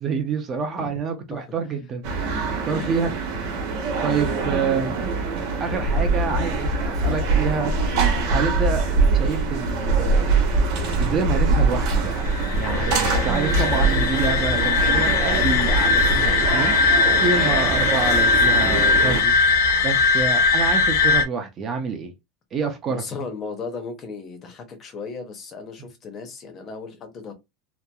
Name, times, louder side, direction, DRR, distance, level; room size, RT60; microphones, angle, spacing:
voice 1, 0.0-3.1 4.0-5.0 5.6-7.7 8.3-8.9 9.1-10.3 11.0-22.1 22.5-23.2, right 5 dB, 20° right, 0.4 m, -27 dB
sound 1, 2.0-19.2, right 4 dB, 50° right, 0.9 m, -27 dB
sound 2, 5.7-16.5, right 2 dB, 85° right, 0.8 m, -23 dB
sound 3, 12.1-21.2, left 4 dB, 85° left, 0.6 m, -20 dB
voice 2, 22.9-27.3, left 4 dB, 25° left, 0.6 m, -35 dB
2.8 x 2.3 x 2.2 m
supercardioid pair, 180°, 0 cm